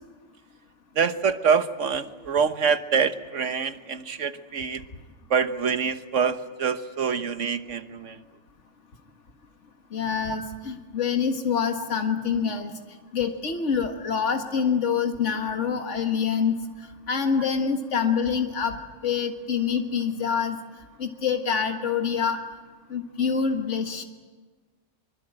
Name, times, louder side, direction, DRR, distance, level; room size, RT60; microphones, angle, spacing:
voice 1, 1.0-4.8 5.3-8.2 10.3-10.5, right 6 dB, 90° right, 10 dB, 1.5 m, -25 dB
voice 2, 9.9-12.7 13.1-16.6 17.1-18.8 19.0-20.6 21.0-22.4 22.9-24.0, left 6 dB, 80° left, 4 dB, 2.0 m, -26 dB
24.5 x 24.0 x 8.9 m, 1.4 s
omnidirectional pair, 1.2 m